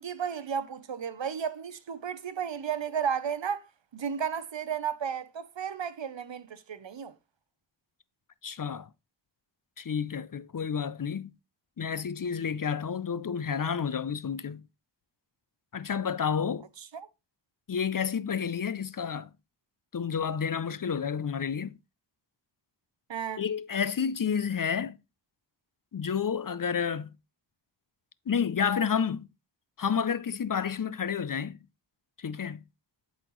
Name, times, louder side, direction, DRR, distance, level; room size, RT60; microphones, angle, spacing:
voice 1, 0.0-3.6 3.9-7.1 16.9-17.1 23.1-23.4, right 7 dB, 75° right, 0.7 m, -33 dB
voice 2, 8.4-8.9 9.8-11.3 11.8-14.6 15.7-16.7 17.7-19.3 19.9-21.8 23.4-25.0 25.9-27.1 28.3-29.3 29.8-31.6 32.2-32.6, left 7 dB, 50° left, 0.5 m, -30 dB
11.5 x 4.1 x 3.0 m
wide cardioid pair, 50°, 45 cm